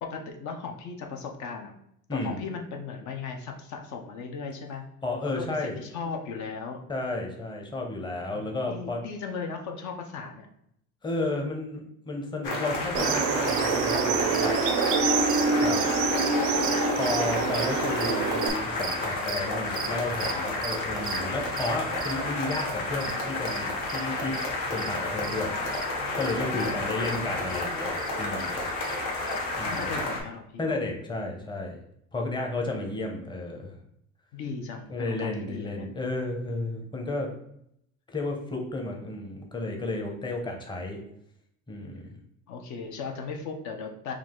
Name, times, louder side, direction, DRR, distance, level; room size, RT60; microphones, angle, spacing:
voice 1, 0.0-1.7 2.1-4.8 5.2-6.8 8.3-10.5 26.5-27.3 29.7-30.8 32.7-32.8 34.3-35.9 42.5-44.1, left 5 dB, 60° left, 3 dB, 0.7 m, -37 dB
voice 2, 2.1-2.4 5.0-5.8 6.9-9.0 11.0-14.6 15.6-15.8 16.9-24.3 24.7-25.6 26.2-28.7 29.6-29.8 30.6-31.8 32.1-33.7 34.9-37.3 38.1-41.0 41.7-42.1, left 2 dB, 15° left, 1 dB, 0.8 m, -32 dB
sound 1, 12.4-30.2, left 2 dB, 80° left, 1.2 m, -31 dB
sound 2, 12.7-30.0, right 6 dB, 30° right, 0.4 m, -40 dB
sound 3, 12.9-18.5, right 5 dB, 90° right, 0.6 m, -26 dB
4.7 x 2.4 x 3.6 m, 0.73 s
cardioid pair, 120°, 32 cm